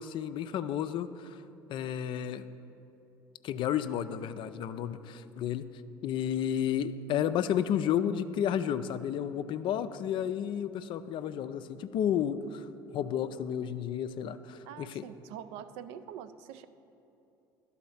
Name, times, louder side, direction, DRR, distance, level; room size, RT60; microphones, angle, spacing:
voice 1, 0.0-1.4 1.7-2.4 3.4-5.7 6.0-15.0, left 9 dB, 45° left, 12 dB, 0.4 m, -32 dB
voice 2, 14.7-16.7, right 9 dB, 60° right, 13 dB, 0.4 m, -44 dB
12.5 x 4.1 x 5.6 m, 2.8 s
figure-of-eight pair, 60°, 11 cm